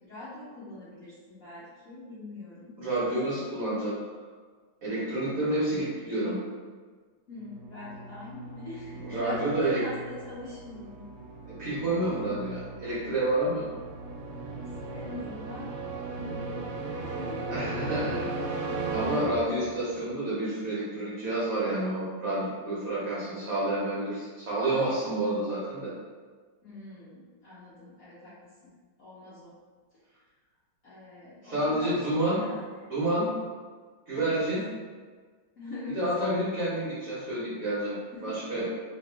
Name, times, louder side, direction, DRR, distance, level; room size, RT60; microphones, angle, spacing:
voice 1, 0.0-2.8 7.3-11.2 14.4-15.7 16.1-16.6 17.0-17.5 19.1-19.3 26.6-28.4 28.6-28.7 29.0-29.5 30.8-32.9 34.1-34.4 35.6-36.0 38.1-38.6, left 2 dB, 60° left, -11 dB, 0.9 m, -43 dB
voice 2, 2.8-4.0 4.8-6.4 9.0-9.8 11.5-13.7 17.5-25.9 31.4-32.4 32.9-33.3 34.1-34.6 35.9-38.0 38.2-38.7, right 1 dB, 55° right, -9 dB, 1.0 m, -29 dB
sound 1, 7.4-20.0, right 3 dB, 85° right, 1.6 m, -37 dB
3.1 x 2.9 x 3.3 m, 1.5 s
omnidirectional pair, 2.3 m